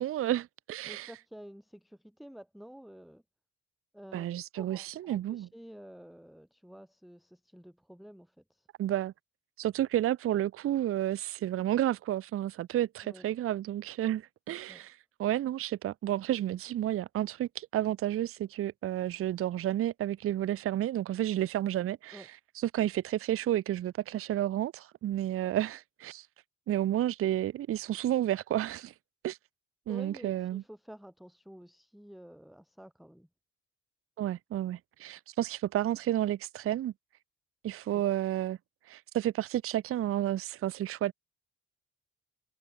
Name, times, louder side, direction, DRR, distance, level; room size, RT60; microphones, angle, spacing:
voice 1, 0.0-1.1 4.1-5.5 8.8-9.1 9.6-22.3 22.6-26.3 26.7-28.9 29.2-29.4 29.9-30.6 34.2-36.9 37.6-38.6 38.9-41.1, right 12 dB, 50° right, 0.5 m, -31 dB
voice 2, 0.9-3.2 3.9-4.3 4.6-8.7 13.0-13.3 14.7-14.9 22.1-22.3 29.9-33.3, equal, ahead, 1.2 m, -50 dB
cardioid pair, 90°, 30 cm